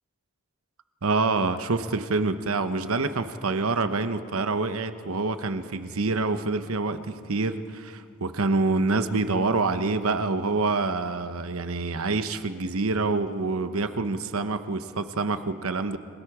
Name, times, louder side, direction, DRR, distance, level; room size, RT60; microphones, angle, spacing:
voice 1, 1.0-16.0, right 3 dB, 80° right, 10 dB, 0.9 m, -26 dB
29.5 x 18.0 x 4.9 m, 2.2 s
head